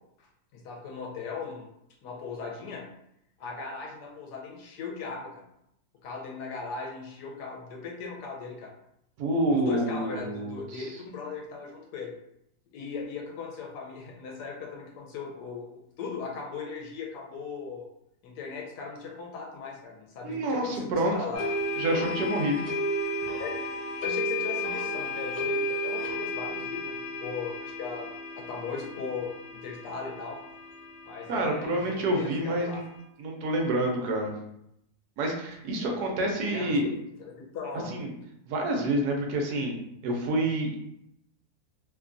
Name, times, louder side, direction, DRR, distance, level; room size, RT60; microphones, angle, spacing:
voice 1, 0.5-1.7 2.0-2.8 3.4-5.4 6.0-8.7 9.5-12.1 12.7-15.7 16.0-17.8 18.2-21.4 21.7-22.2 23.2-23.6 24.0-28.1 28.4-30.4 31.1-32.8 35.8-35.9 36.5-36.8 37.2-37.9, left 5 dB, 90° left, 0 dB, 1.2 m, -38 dB
voice 2, 9.2-10.9 20.2-21.1 21.8-22.6 31.3-32.8 33.2-34.3 35.2-36.9 37.9-38.1 38.5-39.7 40.0-40.8, right 1 dB, 75° right, 2 dB, 1.1 m, -28 dB
sound 1, 21.3-33.0, left 1 dB, 65° left, 1.1 m, -33 dB
3.0 x 2.2 x 2.5 m, 0.78 s
omnidirectional pair, 1.7 m